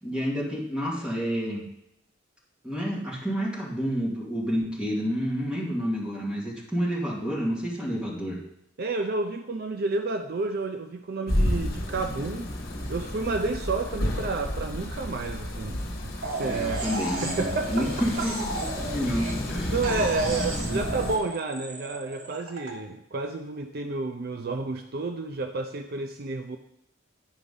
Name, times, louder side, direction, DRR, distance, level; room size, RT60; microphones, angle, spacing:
voice 1, 0.0-1.6 2.6-8.4 16.3-19.7 20.7-20.8, equal, 5° right, -5 dB, 2.2 m, -29 dB
voice 2, 8.8-12.5 12.9-16.1 16.4-16.8 17.2-17.9 18.2-18.3 19.7-26.6, right 3 dB, 45° right, 6 dB, 0.4 m, -30 dB
sound 1, 11.3-21.2, left 1 dB, 50° left, 1.5 m, -31 dB
sound 2, 16.2-19.5 19.8-22.7, right 2 dB, 80° right, 1.6 m, -35 dB
9.9 x 4.9 x 5.4 m, 0.80 s
head